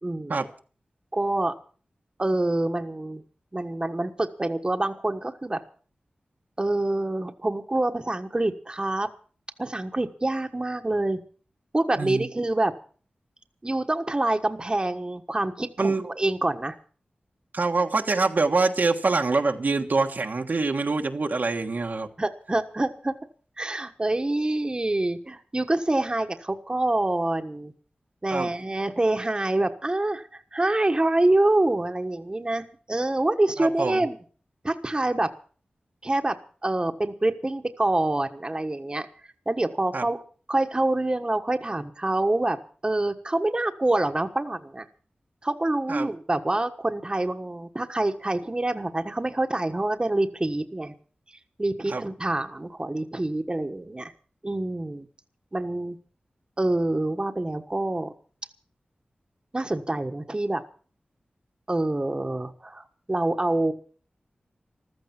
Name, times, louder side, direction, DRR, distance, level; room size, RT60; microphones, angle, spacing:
voice 1, 0.0-0.4 1.1-1.5 2.2-3.2 3.5-5.6 6.6-9.1 9.6-11.2 11.7-12.7 13.6-16.8 22.2-23.1 23.6-27.7 28.2-34.2 34.6-35.3 36.0-36.4 36.6-39.1 39.5-40.2 40.5-42.6 42.8-44.9 45.4-50.9 51.6-54.1 54.4-55.1 55.5-56.0 56.6-58.1 59.5-60.6 61.7-63.7, right 2 dB, 25° right, 5 dB, 1.4 m, -26 dB
voice 2, 17.5-22.1 28.3-28.5 33.6-34.0 39.9-40.0 45.9-46.1 51.8-52.0, right 3 dB, 65° right, 3 dB, 1.4 m, -25 dB
15.0 x 13.0 x 6.0 m, 0.42 s
wide cardioid pair, 60°, 3 cm